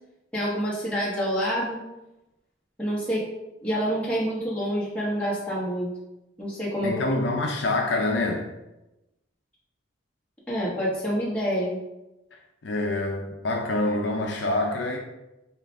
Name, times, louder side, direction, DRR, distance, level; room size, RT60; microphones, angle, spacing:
voice 1, 0.3-1.8 2.8-3.3 3.6-5.9 6.4-7.1 10.5-11.8, equal, 5° left, 1.2 m, -27 dB
voice 2, 6.8-8.5 12.6-15.0, left 2 dB, 65° left, 0.5 m, -26 dB
5.6 x 2.4 x 3.5 m
head